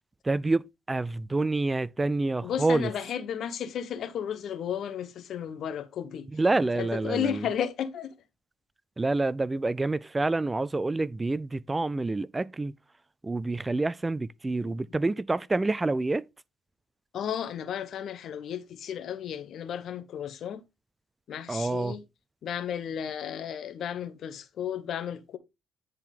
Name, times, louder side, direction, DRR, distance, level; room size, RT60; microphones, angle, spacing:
voice 1, 0.2-2.9 6.3-7.5 9.0-12.7 13.2-16.3 21.5-22.0, right 2 dB, 20° right, 0.3 m, -27 dB
voice 2, 2.4-6.3 6.8-8.1 14.6-14.8 17.1-20.6 21.3-22.0 22.4-25.4, left 9 dB, 70° left, 1.0 m, -33 dB
9.9 x 4.5 x 3.6 m
cardioid pair, 90°, 0 cm